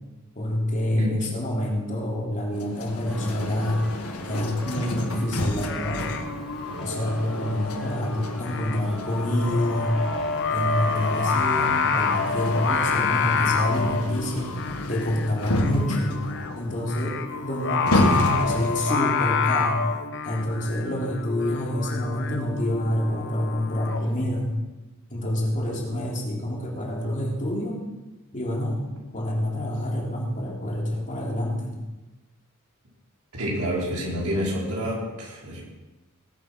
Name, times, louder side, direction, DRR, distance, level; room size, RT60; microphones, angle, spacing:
voice 1, 0.4-3.8 4.2-6.0 6.8-10.0 10.5-14.5 14.9-16.2 16.6-17.2 17.4-19.9 20.2-24.5 25.1-27.8 28.3-28.8 29.1-31.8, left 1 dB, 35° left, -2 dB, 3.5 m, -27 dB
sound 1, 2.5-19.0, left 1 dB, 90° left, 1.6 m, -31 dB
sound 2, 3.1-12.5, equal, ahead, 3.7 m, -41 dB
Singing, 5.5-24.0, left 5 dB, 60° left, 1.2 m, -28 dB
voice 2, 33.3-35.6, equal, 85° right, -4 dB, 5.4 m, -28 dB
19.0 x 8.9 x 6.2 m, 1.1 s
head